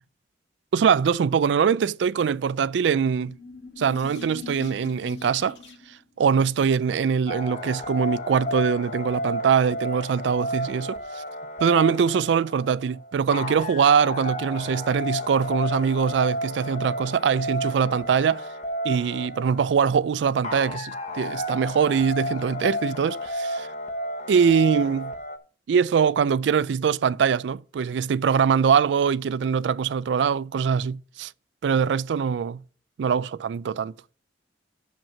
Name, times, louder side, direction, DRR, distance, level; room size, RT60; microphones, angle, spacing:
voice 1, 0.7-3.4 3.8-5.6 6.2-11.2 11.6-18.5 18.8-23.7 24.3-25.1 25.7-31.3 31.6-32.6 33.0-33.9, right 6 dB, 75° right, 0.3 m, -23 dB
sound 1, 3.1-6.0, left 4 dB, 75° left, 2.2 m, -42 dB
sound 2, 7.3-25.4, left 1 dB, 45° left, 1.0 m, -32 dB
7.3 x 5.3 x 6.9 m
head